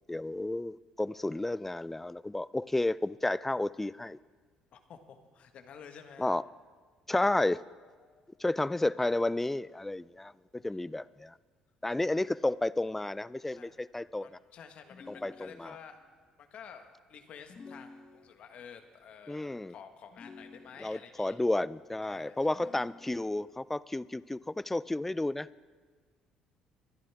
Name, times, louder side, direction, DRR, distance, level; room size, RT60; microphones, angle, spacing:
voice 1, 0.1-4.2 6.2-6.4 7.1-7.6 8.4-11.3 11.8-14.3 15.1-15.7 19.3-19.7 20.8-25.5, left 2 dB, 10° left, 19 dB, 0.4 m, -32 dB
voice 2, 4.7-6.3 8.0-8.5 10.6-10.7 11.8-12.2 13.6-13.8 14.2-16.0 16.4-21.4 22.1-22.7, left 7 dB, 60° left, 7 dB, 1.4 m, -51 dB
sound 1, 14.9-16.0 17.5-18.7 20.1-21.2 22.5-23.5, left 4 dB, 45° left, 1.0 m, -52 dB
23.5 x 10.0 x 3.5 m, 1.5 s
supercardioid pair, 75°, 2 cm